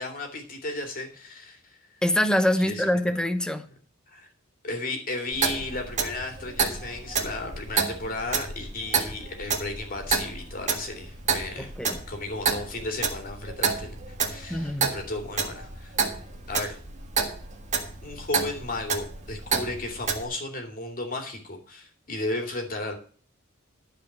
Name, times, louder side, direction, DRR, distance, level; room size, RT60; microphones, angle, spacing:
voice 1, 0.0-1.8 2.6-2.9 4.1-4.3 4.6-11.7 12.1-14.0 14.3-16.0 16.5-16.8 18.0-23.0, left 2 dB, 45° left, 2.6 m, -34 dB
voice 2, 2.0-3.7 11.6-12.0 14.5-15.0, left 1 dB, 5° left, 0.9 m, -25 dB
Clock, 5.3-20.2, right 5 dB, 35° right, 1.7 m, -30 dB
12.5 x 5.0 x 7.3 m
head